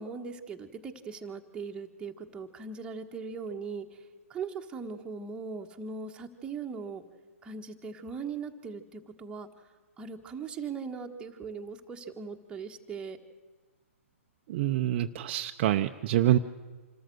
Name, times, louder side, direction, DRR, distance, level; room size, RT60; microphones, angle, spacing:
voice 1, 0.0-4.0 4.3-7.0 7.4-9.5 10.0-13.2 16.2-16.4, right 5 dB, 15° right, 3 dB, 1.4 m, -39 dB
voice 2, 14.5-16.4, right 13 dB, 45° right, 7 dB, 0.6 m, -26 dB
26.5 x 13.5 x 7.8 m, 1.3 s
hypercardioid pair, 130°, 8 cm